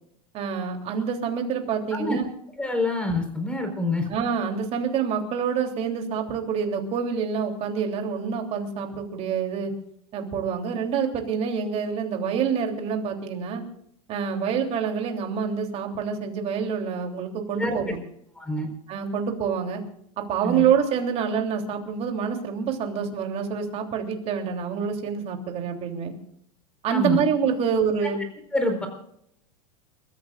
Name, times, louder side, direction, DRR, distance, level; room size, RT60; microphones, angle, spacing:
voice 1, 0.3-2.3 4.1-9.7 10.1-13.6 14.1-18.0 18.9-19.8 20.2-26.1 26.8-28.2, right 7 dB, 40° right, 3 dB, 3.3 m, -27 dB
voice 2, 2.6-4.1 17.5-17.9 18.4-18.7 20.4-20.6 26.9-27.2 28.5-28.9, left 2 dB, 5° left, 5 dB, 4.4 m, -26 dB
30.0 x 14.5 x 2.5 m, 0.73 s
supercardioid pair, 135°, 17 cm